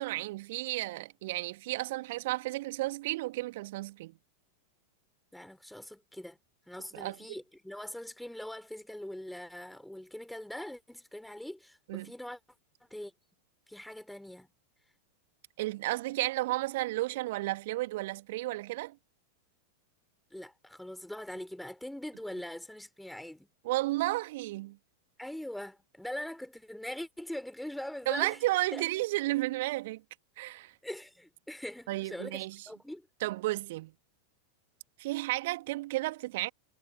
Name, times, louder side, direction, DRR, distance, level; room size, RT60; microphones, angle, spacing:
voice 1, 0.0-4.2 6.9-7.2 11.9-12.1 15.6-19.0 23.6-24.8 28.1-30.0 30.4-30.7 31.9-32.6 33.2-33.9 35.0-36.5, right 18 dB, 50° right, 2.2 m, -33 dB
voice 2, 5.3-6.4 6.7-12.4 12.9-13.1 13.7-14.5 20.3-23.5 25.2-28.4 28.7-28.8 30.8-33.1, left 1 dB, ahead, 4.3 m, -42 dB
figure-of-eight pair, 90°, 0 cm